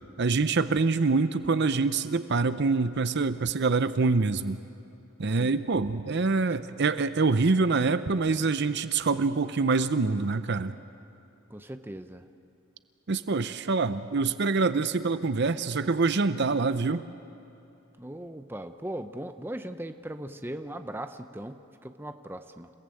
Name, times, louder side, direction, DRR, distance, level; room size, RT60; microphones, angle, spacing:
voice 1, 0.2-4.6 5.2-10.7 13.1-17.1, right 4 dB, 55° right, 12 dB, 0.7 m, -25 dB
voice 2, 11.5-12.2 18.0-22.7, right 1 dB, 10° right, 8 dB, 0.8 m, -39 dB
29.0 x 18.0 x 7.8 m, 2.9 s
head